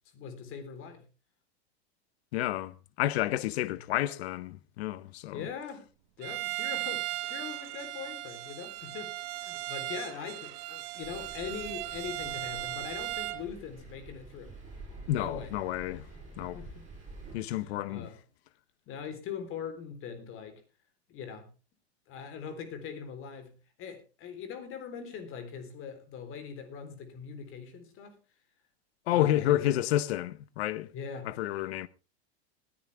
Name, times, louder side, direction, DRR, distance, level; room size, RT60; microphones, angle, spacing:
voice 1, 0.1-1.1 5.3-5.9 6.2-14.6 15.1-15.5 16.4-16.9 17.6-18.2 18.9-20.6 21.1-21.5 22.1-28.2 29.1-29.6 30.9-31.3, left 6 dB, 40° left, 3.8 m, -42 dB
voice 2, 2.3-5.5 15.1-16.0 16.4-16.6 17.3-18.1 29.1-30.9 31.2-31.9, left 14 dB, 75° left, 1.0 m, -30 dB
Bowed string instrument, 6.2-13.5, right 17 dB, 60° right, 1.5 m, -37 dB
Thunder, 11.0-17.4, right 3 dB, 25° right, 6.4 m, -48 dB
20.0 x 10.0 x 3.4 m
supercardioid pair, 125°, 32 cm